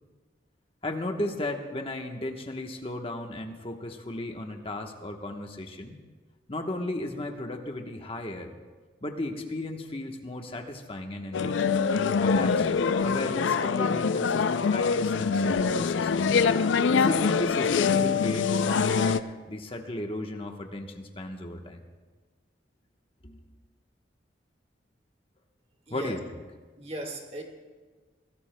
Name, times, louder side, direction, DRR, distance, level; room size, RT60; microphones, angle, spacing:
voice 1, 0.8-6.0 6.5-8.5 9.0-11.7 12.2-12.7 13.0-16.4 16.9-19.2 19.5-21.8 23.2-23.4 25.9-26.4, left 1 dB, 30° left, 4 dB, 1.1 m, -35 dB
sound 1, 11.3-19.2, left 5 dB, 85° left, 0.4 m, -24 dB
voice 2, 26.8-27.4, right 1 dB, 35° right, 2 dB, 1.7 m, -37 dB
23.0 x 16.5 x 2.2 m, 1.4 s
head